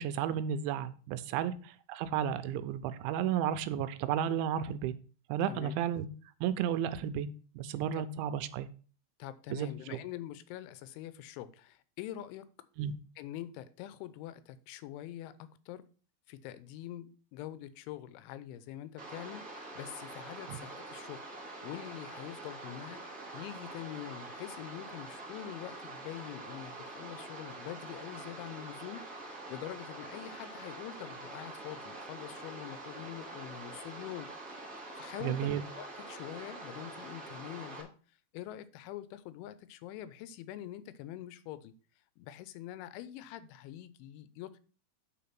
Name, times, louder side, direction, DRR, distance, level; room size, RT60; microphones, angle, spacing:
voice 1, 0.0-4.9 5.3-6.1 6.4-7.3 7.6-8.7 9.5-10.0 12.8-12.9 20.5-20.6 35.2-35.6, right 9 dB, 85° right, 11 dB, 2.9 m, -33 dB
voice 2, 9.2-12.5 13.2-15.8 16.3-21.2 21.6-34.6 34.9-35.5 35.8-37.9 38.3-41.7 42.2-44.6, left 12 dB, 85° left, 15 dB, 3.0 m, -45 dB
sound 1, 19.0-37.8, right 2 dB, 60° right, 0.8 m, -45 dB
8.4 x 4.7 x 5.8 m, 0.39 s
omnidirectional pair, 5.4 m